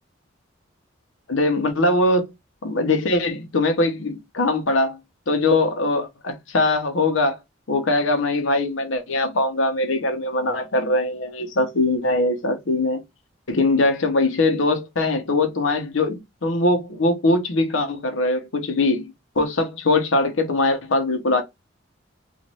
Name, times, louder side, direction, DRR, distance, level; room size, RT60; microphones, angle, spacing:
voice 1, 1.3-2.3 2.6-5.0 5.3-7.4 7.7-13.0 13.5-21.4, left 2 dB, 75° left, 0.8 m, -21 dB
3.0 x 2.5 x 2.8 m
head